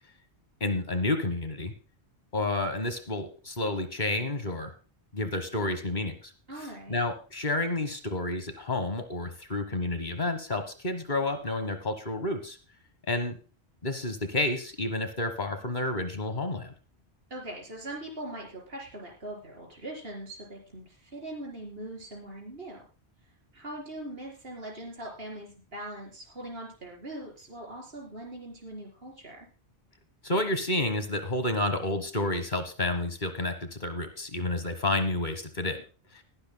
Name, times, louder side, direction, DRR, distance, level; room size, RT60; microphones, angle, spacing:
voice 1, 0.6-1.7 2.3-4.7 5.1-6.3 6.9-12.6 13.1-13.4 13.8-16.7 30.2-35.8 36.1-36.2, left 2 dB, 45° left, 9 dB, 1.5 m, -30 dB
voice 2, 6.5-7.0 17.3-22.8 23.5-29.4, right 1 dB, 60° right, 0 dB, 4.6 m, -41 dB
19.0 x 12.0 x 2.2 m, 0.34 s
omnidirectional pair, 1.1 m